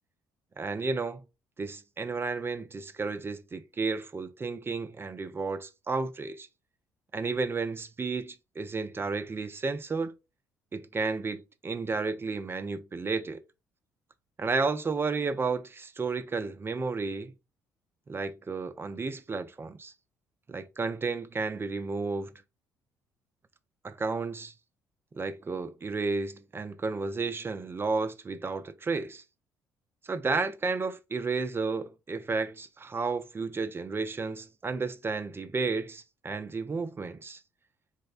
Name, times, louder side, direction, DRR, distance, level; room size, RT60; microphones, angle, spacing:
voice 1, 0.6-1.2 1.6-6.5 7.1-10.1 10.7-13.4 14.4-17.3 18.1-19.9 20.5-22.3 23.8-24.5 25.1-29.2 30.0-37.4, right 4 dB, 25° right, 0.4 m, -32 dB
4.0 x 2.1 x 2.4 m
hypercardioid pair, 55°, 8 cm